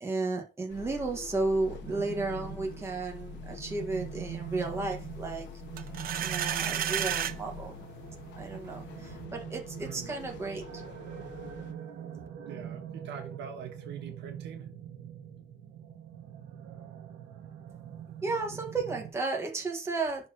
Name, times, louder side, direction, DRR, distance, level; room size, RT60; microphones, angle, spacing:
voice 1, 0.0-5.5 6.2-7.8 8.4-10.8 18.2-20.3, right 3 dB, 15° right, 1.6 m, -33 dB
sound 1, 0.7-11.7, left 8 dB, 75° left, 1.0 m, -46 dB
sound 2, 1.8-19.1, right 9 dB, 85° right, 1.6 m, -43 dB
sound 3, 5.8-7.4, right 10 dB, 50° right, 0.7 m, -31 dB
voice 2, 8.6-9.0 9.8-10.2 12.5-14.7, right 7 dB, 70° right, 1.5 m, -43 dB
11.5 x 4.1 x 2.9 m
cardioid pair, 170°, 19 cm